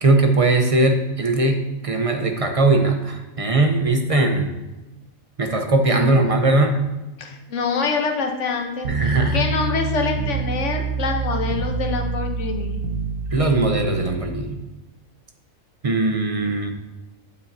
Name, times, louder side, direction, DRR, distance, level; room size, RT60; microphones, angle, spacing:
voice 1, 0.0-4.5 5.4-6.8 8.9-9.4 13.3-14.6 15.8-16.7, right 2 dB, 35° right, 4 dB, 0.6 m, -19 dB
voice 2, 5.9-6.3 7.2-8.9 9.3-12.8, left 4 dB, 65° left, 3 dB, 1.2 m, -25 dB
sound 1, 8.8-14.2, right 4 dB, 85° right, 1.1 m, -26 dB
8.4 x 7.0 x 2.7 m, 1.1 s
omnidirectional pair, 1.4 m